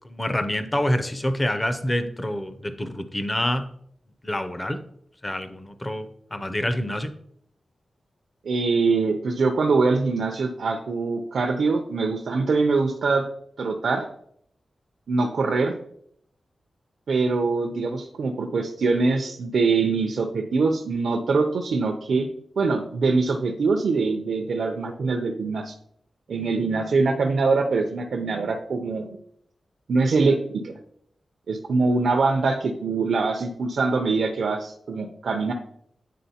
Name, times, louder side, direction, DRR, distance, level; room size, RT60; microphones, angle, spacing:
voice 1, 0.1-3.6 4.2-4.8 5.2-6.1 6.3-7.1, left 1 dB, 20° left, 9 dB, 0.5 m, -26 dB
voice 2, 8.4-13.3 13.6-14.1 15.1-15.7 17.1-22.3 22.6-25.7 26.3-29.2 29.9-30.4 30.6-30.8 31.5-35.5, right 4 dB, 75° right, 2 dB, 0.5 m, -23 dB
9.1 x 3.8 x 2.8 m, 0.69 s
wide cardioid pair, 135°, 0 cm